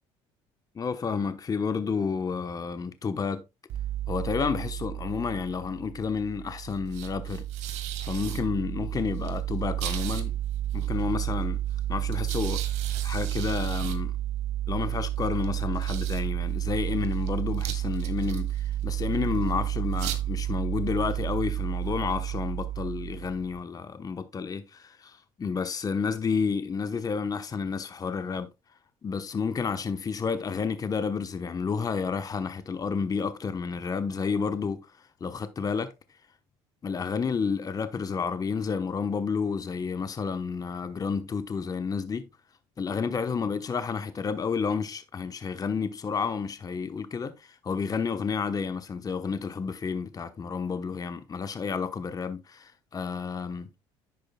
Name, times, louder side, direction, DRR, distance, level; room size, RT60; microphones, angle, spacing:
voice 1, 0.7-3.4 4.1-7.5 8.0-10.4 10.7-11.6 11.9-12.7 13.0-14.1 14.7-28.5 29.0-34.9 35.2-35.9 36.8-42.3 42.8-53.7, left 5 dB, 30° left, 1.0 m, -30 dB
sound 1, 3.7-23.6, right 12 dB, 75° right, 1.6 m, -31 dB
10.0 x 8.6 x 2.3 m
supercardioid pair, 85°, 12 cm